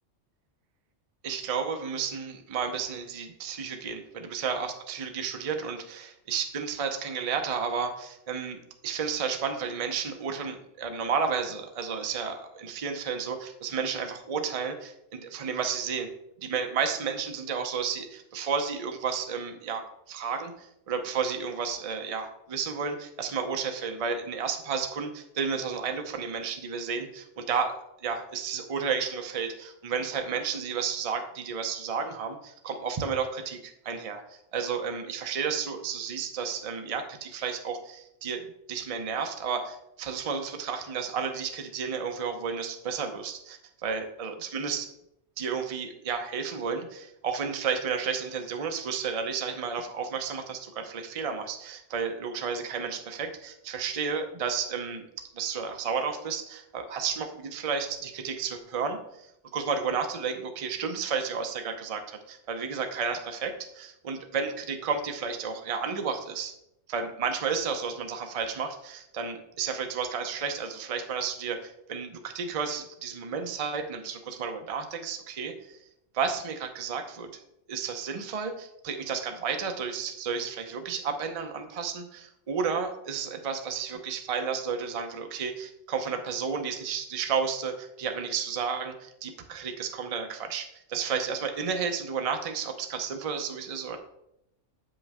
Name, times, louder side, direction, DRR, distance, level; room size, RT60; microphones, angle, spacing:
voice 1, 1.2-16.1 16.4-38.4 38.7-44.9 45.4-55.0 55.3-66.5 66.9-75.8 76.1-77.4 77.7-94.0, right 6 dB, 35° right, 6 dB, 0.6 m, -32 dB
7.6 x 5.4 x 3.5 m, 0.80 s
omnidirectional pair, 1.3 m